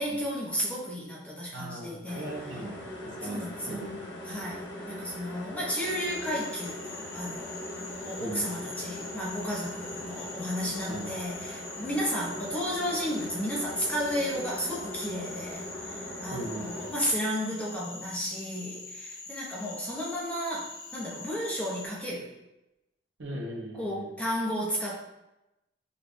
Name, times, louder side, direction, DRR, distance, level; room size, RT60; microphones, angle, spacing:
voice 1, 0.0-2.3 3.2-3.8 4.2-7.6 8.1-22.3 23.7-25.0, equal, 5° left, -5 dB, 0.6 m, -33 dB
voice 2, 1.5-2.8 3.0-3.9 8.2-8.4 10.9-11.1 16.3-16.7 23.2-24.1, right 1 dB, 60° right, -1 dB, 0.7 m, -38 dB
sound 1, 2.1-16.9, left 1 dB, 60° left, 0.7 m, -41 dB
Cricket / Frog, 5.8-21.9, left 3 dB, 85° left, 1.1 m, -44 dB
5.1 x 2.3 x 2.5 m, 0.94 s
head